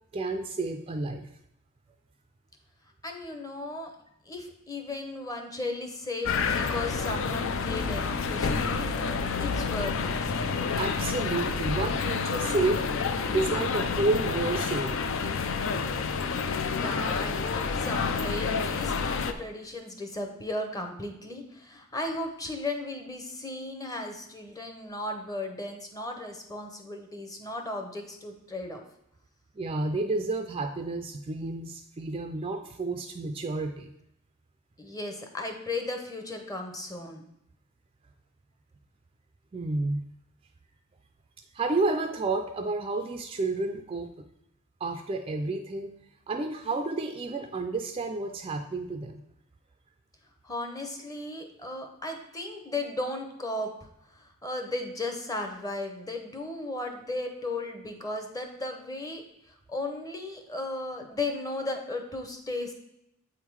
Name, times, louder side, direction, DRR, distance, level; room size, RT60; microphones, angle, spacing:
voice 1, 0.1-1.3 10.8-12.8 13.3-14.9 29.6-33.9 39.5-40.0 41.5-44.1 44.8-45.9 46.3-49.2, right 3 dB, 25° right, 6 dB, 0.4 m, -30 dB
voice 2, 3.0-3.9 4.3-8.9 9.2-10.3 16.7-28.8 34.8-37.3 50.4-53.7 54.1-62.7, left 2 dB, 15° left, 4 dB, 0.8 m, -36 dB
sound 1, 6.3-19.3, left 5 dB, 65° left, 0.5 m, -29 dB
7.7 x 3.7 x 4.7 m, 0.80 s
head